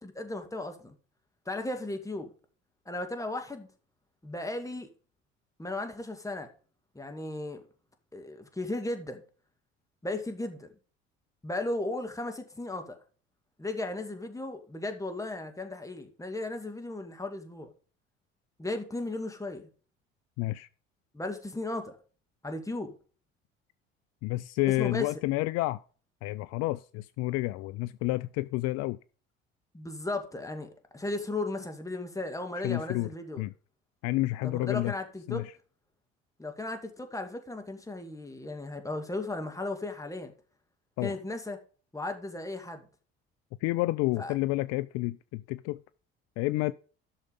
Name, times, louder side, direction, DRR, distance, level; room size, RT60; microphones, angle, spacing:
voice 1, 0.0-0.9 1.5-2.3 2.9-3.7 4.2-4.9 5.6-6.5 6.9-7.6 8.1-9.2 10.0-10.7 11.4-13.0 13.6-17.7 18.6-19.7 21.1-21.9 22.4-22.9 24.8-25.1 29.7-33.4 34.4-35.4 36.4-40.3 41.0-41.6 41.9-42.8 44.2-44.3, left 2 dB, 10° left, 2.4 m, -35 dB
voice 2, 20.4-20.7 24.2-25.8 26.2-29.0 32.6-33.1 33.4-33.5 34.0-34.9 35.3-35.5 41.0-41.2 43.6-45.8 46.4-46.7, left 19 dB, 60° left, 0.4 m, -30 dB
11.5 x 6.5 x 5.3 m
hypercardioid pair, 60°, 29 cm